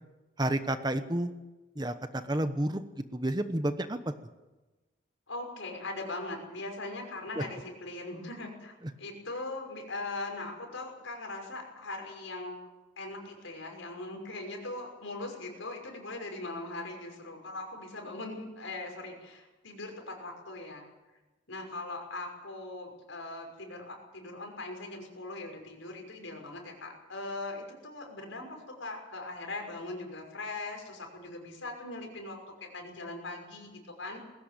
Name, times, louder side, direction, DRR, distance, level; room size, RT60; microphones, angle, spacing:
voice 1, 0.4-1.3 1.8-1.9 2.3-2.8 3.1-4.0 7.4-7.5, right 1 dB, 20° right, 10 dB, 1.0 m, -30 dB
voice 2, 5.3-12.6 13.0-20.9 21.5-34.2, left 2 dB, 85° left, 2 dB, 6.0 m, -40 dB
20.5 x 17.0 x 9.0 m, 1.1 s
head